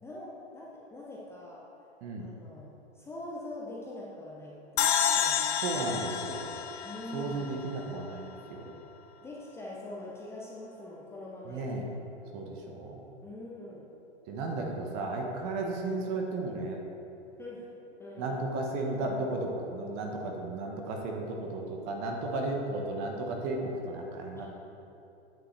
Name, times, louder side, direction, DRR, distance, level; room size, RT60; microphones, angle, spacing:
voice 1, 0.0-1.7 2.2-5.5 6.8-7.6 9.2-11.8 13.2-13.9 17.4-17.7 18.0-18.4 24.4-24.5, left 2 dB, 5° left, -5 dB, 0.6 m, -43 dB
sound 1, 4.8-8.1, left 8 dB, 65° left, 0.7 m, -30 dB
voice 2, 5.6-6.5 7.1-8.7 11.5-11.9 12.3-13.0 14.3-16.8 18.2-24.5, right 2 dB, 35° right, 1 dB, 1.2 m, -34 dB
9.3 x 7.5 x 3.4 m, 2.8 s
hypercardioid pair, 125°, 35 cm